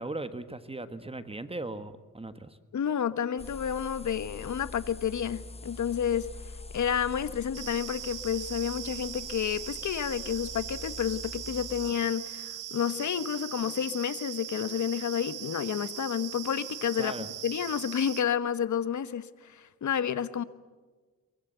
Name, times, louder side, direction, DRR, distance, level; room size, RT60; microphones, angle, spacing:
voice 1, 0.0-2.6 17.0-17.3, right 2 dB, 20° right, 11 dB, 1.4 m, -38 dB
voice 2, 2.7-6.3 6.7-20.4, left 8 dB, 70° left, 14 dB, 1.2 m, -30 dB
sound 1, 3.4-11.9, left 3 dB, 20° left, 1.1 m, -44 dB
sound 2, 7.5-18.2, right 12 dB, 90° right, 0.8 m, -40 dB
23.5 x 22.5 x 8.1 m, 1.3 s
cardioid pair, 95°, 31 cm